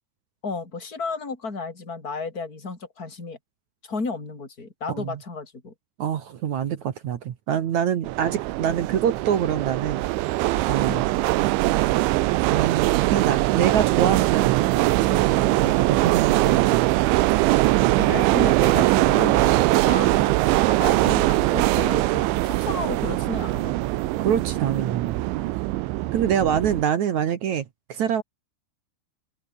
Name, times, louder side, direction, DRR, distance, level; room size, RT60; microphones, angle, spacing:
voice 1, 0.4-3.4 3.8-5.7 10.9-11.1 18.0-20.3 20.6-23.7, left 4 dB, 20° left, 5.4 m, -33 dB
voice 2, 4.9-5.2 6.0-10.0 10.7-11.1 12.5-17.1 24.2-25.2 26.1-28.2, right 9 dB, 60° right, 2.0 m, -25 dB
sound 1, 8.1-26.8, right 18 dB, 85° right, 3.3 m, -21 dB
omnidirectional pair, 5.2 m